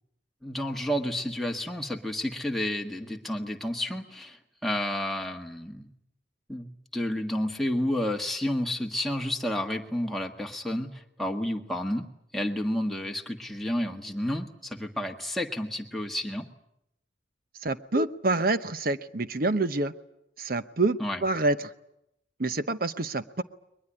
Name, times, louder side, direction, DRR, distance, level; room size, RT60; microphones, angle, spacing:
voice 1, 0.4-5.9 6.5-12.1 12.3-16.5 21.0-21.2, left 1 dB, ahead, 2 dB, 1.6 m, -31 dB
voice 2, 17.6-19.9 20.4-21.7 22.4-23.4, right 2 dB, 50° right, 12 dB, 0.9 m, -27 dB
22.0 x 20.5 x 10.0 m, 0.81 s
head